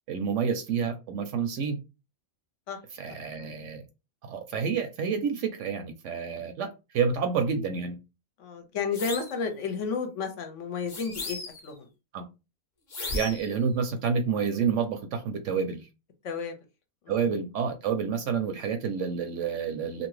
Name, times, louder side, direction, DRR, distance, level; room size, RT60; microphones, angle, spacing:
voice 1, 0.1-1.8 3.0-3.8 4.2-6.7 6.9-8.0 12.1-12.2 13.1-15.8 17.1-20.1, right 6 dB, 65° right, 6 dB, 0.8 m, -29 dB
voice 2, 8.4-11.9 16.2-16.5 17.0-17.4, left 5 dB, 65° left, 6 dB, 0.9 m, -32 dB
sound 1, 8.9-9.4 10.9-11.7 12.9-13.5, left 3 dB, 40° left, 0.7 m, -35 dB
2.7 x 2.6 x 3.1 m, 0.28 s
omnidirectional pair, 1.5 m